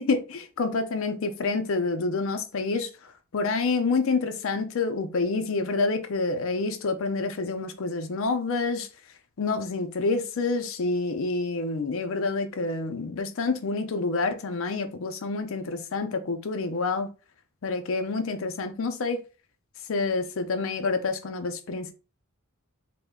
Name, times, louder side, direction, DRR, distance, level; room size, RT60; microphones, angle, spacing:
voice 1, 0.0-2.9 3.3-8.9 9.4-17.1 17.6-19.2 19.9-21.9, left 3 dB, 70° left, 0.5 m, -28 dB
3.1 x 2.1 x 3.6 m
head